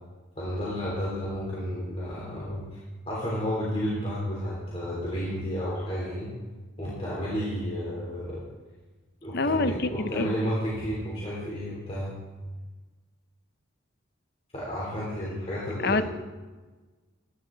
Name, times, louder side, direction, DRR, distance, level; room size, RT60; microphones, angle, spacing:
voice 1, 0.4-2.6 3.1-6.3 6.8-8.4 9.2-12.1 14.5-16.0, equal, 30° left, -7 dB, 3.3 m, -31 dB
voice 2, 9.3-10.4 15.8-16.0, left 3 dB, 50° left, 11 dB, 0.7 m, -26 dB
15.0 x 11.5 x 3.9 m, 1.3 s
head